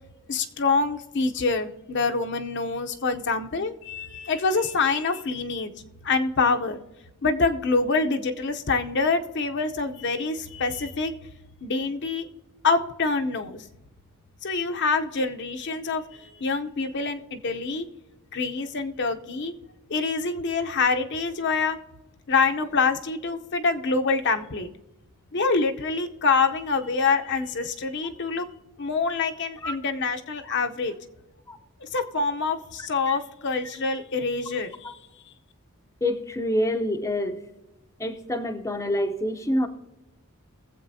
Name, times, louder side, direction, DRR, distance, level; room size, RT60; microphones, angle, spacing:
voice 1, 0.3-5.7 6.0-6.8 7.2-11.1 11.6-12.2 12.6-13.7 14.4-17.9 18.3-19.5 19.9-21.8 22.3-24.7 25.3-28.5 28.8-30.9 31.8-34.9, left 4 dB, 50° left, 6 dB, 0.7 m, -26 dB
voice 2, 36.0-37.4 38.0-39.7, left 1 dB, 15° left, 5 dB, 0.6 m, -27 dB
21.5 x 7.7 x 2.7 m, 1.0 s
head